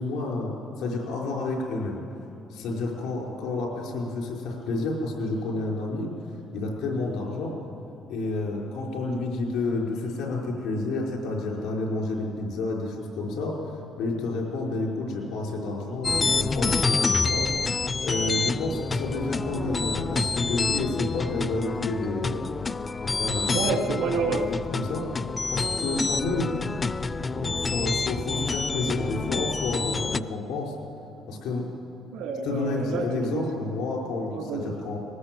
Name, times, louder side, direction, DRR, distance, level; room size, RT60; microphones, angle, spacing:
voice 1, 0.0-2.0 2.5-6.1 6.5-7.5 8.1-13.6 14.0-17.5 18.0-22.5 23.0-23.6 24.5-25.1 25.5-26.7 27.3-30.7 31.3-31.7 32.4-35.0, left 2 dB, 85° left, -1 dB, 5.4 m, -30 dB
sound 1, 16.0-30.2, left 4 dB, 30° left, 0.4 m, -28 dB
voice 2, 23.5-24.5 32.1-33.1 33.3-33.4 34.3-34.7, right 4 dB, 90° right, 2 dB, 2.9 m, -28 dB
19.5 x 19.5 x 7.9 m, 2.7 s
cardioid pair, 90°, 0 cm